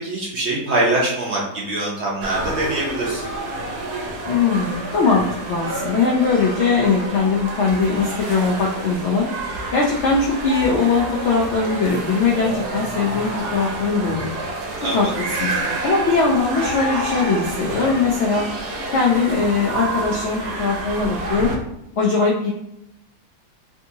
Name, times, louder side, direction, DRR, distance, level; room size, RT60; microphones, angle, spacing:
voice 1, 0.0-3.2 14.8-15.1, right 1 dB, 60° right, -4 dB, 0.7 m, -23 dB
sound 1, 2.2-21.6, right 2 dB, 75° right, 1.2 m, -28 dB
voice 2, 4.3-9.3 9.7-14.3 14.9-15.5 15.8-18.5 18.9-21.5 22.0-22.5, left 4 dB, 80° left, -2 dB, 0.6 m, -20 dB
3.5 x 2.6 x 2.6 m, 0.83 s
omnidirectional pair, 1.7 m